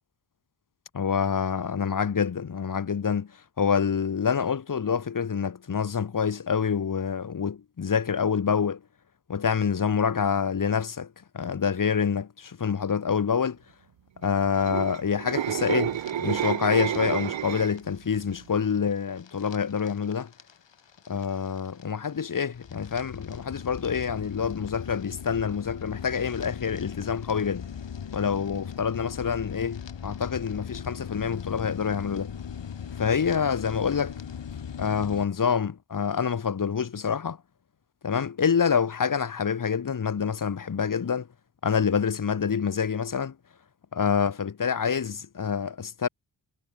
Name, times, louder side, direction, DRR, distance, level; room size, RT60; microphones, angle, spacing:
voice 1, 0.9-3.3 3.6-8.8 9.3-11.1 11.3-13.6 14.2-20.3 21.1-27.7 28.1-32.3 33.0-34.1 34.8-37.4 38.0-41.3 41.6-43.3 43.9-46.1, left 6 dB, 45° left, 1.3 m, -27 dB
sound 1, 14.4-17.9 18.3-18.6, right 11 dB, 75° right, 0.9 m, -29 dB
sound 2, 15.9-35.3, left 7 dB, 70° left, 2.7 m, -39 dB
wide cardioid pair, 100°, 46 cm